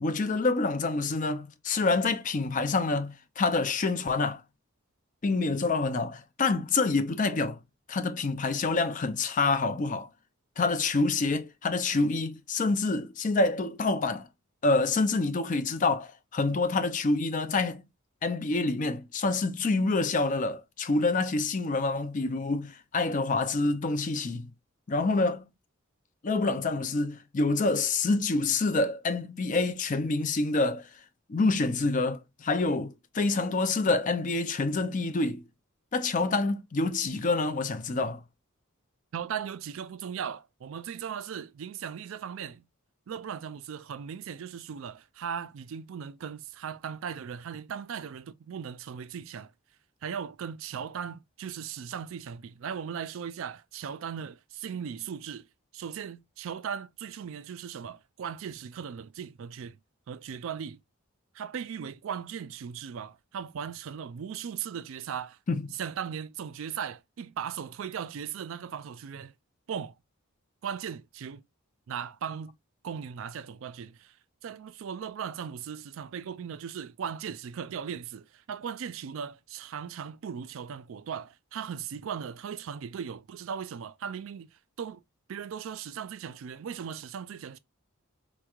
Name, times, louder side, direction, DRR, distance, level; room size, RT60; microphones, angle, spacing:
voice 1, 0.0-4.4 5.2-7.6 7.9-10.1 10.6-14.3 14.6-17.8 18.2-24.5 24.9-25.5 26.2-30.9 31.3-35.4 35.9-38.2 65.5-65.7, left 3 dB, 35° left, 0.5 m, -27 dB
voice 2, 39.1-42.6 43.1-49.5 50.0-55.5 55.7-59.8 60.1-60.8 61.3-65.4 65.7-69.3 69.7-69.9 70.6-71.4 71.9-72.6 72.8-74.2 74.4-85.0 85.3-87.6, right 7 dB, 65° right, 0.3 m, -38 dB
4.3 x 3.1 x 2.3 m
head